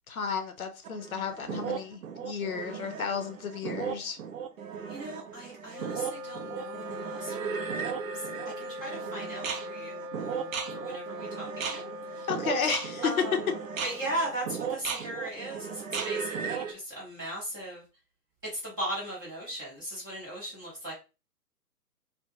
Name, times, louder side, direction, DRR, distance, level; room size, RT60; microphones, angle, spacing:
voice 1, 0.1-4.2 12.3-13.2, left 6 dB, 60° left, 0.6 m, -32 dB
sound 1, 0.8-16.7, right 6 dB, 60° right, 0.5 m, -36 dB
voice 2, 4.9-8.0 8.6-12.3 13.0-13.4 13.8-17.8 18.5-20.9, right 1 dB, 15° right, 0.6 m, -38 dB
Wind instrument woodwind instrument, 5.6-15.2, equal, 85° right, 0.8 m, -41 dB
2.2 x 2.2 x 3.1 m
figure-of-eight pair, 140°, 48 cm